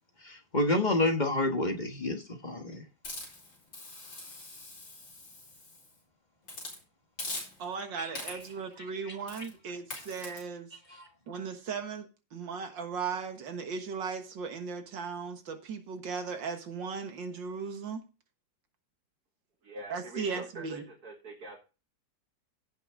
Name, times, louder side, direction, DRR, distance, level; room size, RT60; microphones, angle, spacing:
voice 1, 0.2-2.8 8.0-8.1 9.0-9.1 10.9-11.1, left 2 dB, 25° left, 1.3 m, -29 dB
Hiss, 3.0-5.9 6.4-6.8 7.2-7.8 8.1-8.6 9.3-9.5 9.9-10.4, left 2 dB, 85° left, 5.1 m, -42 dB
voice 2, 7.6-18.0 19.9-20.8, right 5 dB, 75° right, 2.1 m, -37 dB
voice 3, 19.6-21.6, right 2 dB, 55° right, 2.4 m, -44 dB
16.0 x 5.8 x 3.8 m
omnidirectional pair, 2.0 m